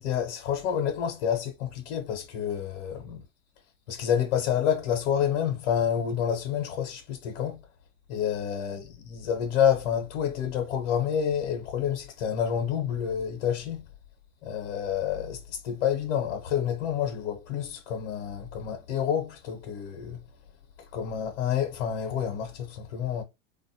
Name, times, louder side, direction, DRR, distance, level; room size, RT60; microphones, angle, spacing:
voice 1, 0.0-3.2 3.9-7.6 8.1-13.8 14.4-20.2 20.9-23.2, left 8 dB, 70° left, 0.8 m, -28 dB
3.3 x 2.2 x 2.7 m
supercardioid pair, 130°, 36 cm